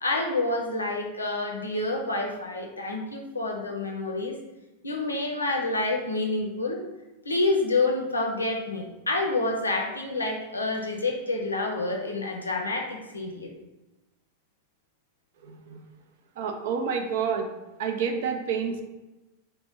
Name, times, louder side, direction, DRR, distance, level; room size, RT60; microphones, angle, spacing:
voice 1, 0.0-4.4 4.8-6.8 7.2-13.5, left 2 dB, 80° left, 1 dB, 0.5 m, -28 dB
voice 2, 15.4-15.8 16.4-17.5 17.8-18.8, right 6 dB, 55° right, 5 dB, 0.4 m, -29 dB
2.9 x 2.0 x 3.4 m, 1.0 s
figure-of-eight pair, 90°, 0 cm